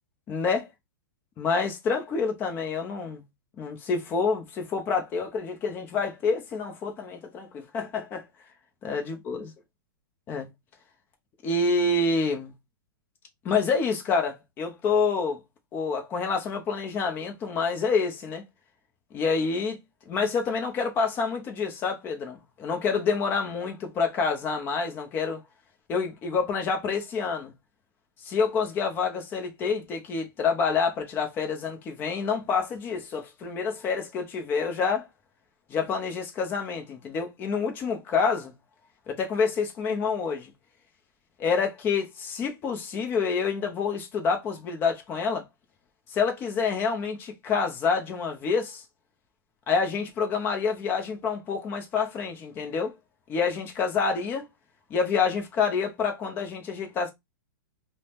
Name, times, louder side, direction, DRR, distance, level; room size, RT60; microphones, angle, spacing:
voice 1, 0.3-0.7 1.4-3.2 3.6-8.2 8.8-9.5 10.3-10.5 11.4-12.5 13.4-15.4 15.7-18.4 19.1-19.8 20.1-25.4 25.9-27.5 28.2-35.1 35.7-38.5 39.1-40.5 41.4-45.4 46.1-48.8 49.7-52.9 53.3-54.4 54.9-57.1, left 5 dB, 20° left, 0.6 m, -27 dB
2.6 x 2.1 x 3.2 m
hypercardioid pair, 155°, 11 cm